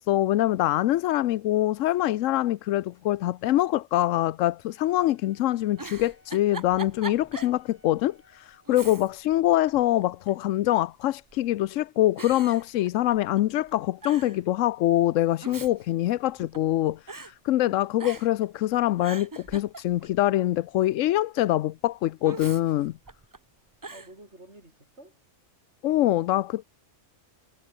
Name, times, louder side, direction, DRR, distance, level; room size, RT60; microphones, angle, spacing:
voice 1, 0.0-23.0 25.8-26.6, left 14 dB, 85° left, 0.9 m, -24 dB
Wind instrument woodwind instrument, 4.7-8.9, left 2 dB, 65° left, 4.6 m, -63 dB
Giggle, 5.6-7.6 8.0-8.1 8.7-9.4 9.7-10.5 11.3-11.7 12.2-13.4 13.7-13.8 14.0-14.4 15.2-16.7 17.1-17.3 18.0-18.5 18.8-20.2 22.2-23.4 23.8-24.1, right 3 dB, 20° right, 0.6 m, -41 dB
voice 2, 7.1-7.5 8.9-9.1 23.9-25.2, right 1 dB, 60° right, 8.0 m, -51 dB
omnidirectional pair, 1.3 m